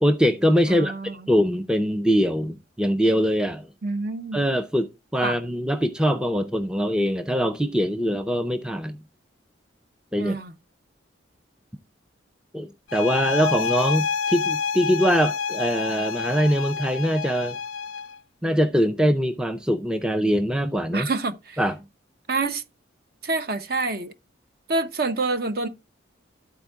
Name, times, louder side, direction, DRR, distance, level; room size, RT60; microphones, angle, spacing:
voice 1, 0.0-3.7 4.3-9.0 10.1-10.4 12.5-17.6 18.4-21.1 21.6-21.8, equal, 5° right, 0.4 m, -23 dB
voice 2, 0.7-1.3 3.8-4.5 5.2-5.4 10.2-10.5 20.9-21.6 22.3-22.6 23.2-24.1 24.7-25.7, right 3 dB, 50° right, 0.7 m, -27 dB
sound 1, 12.9-18.2, left 6 dB, 80° left, 0.4 m, -28 dB
12.5 x 4.4 x 3.5 m
head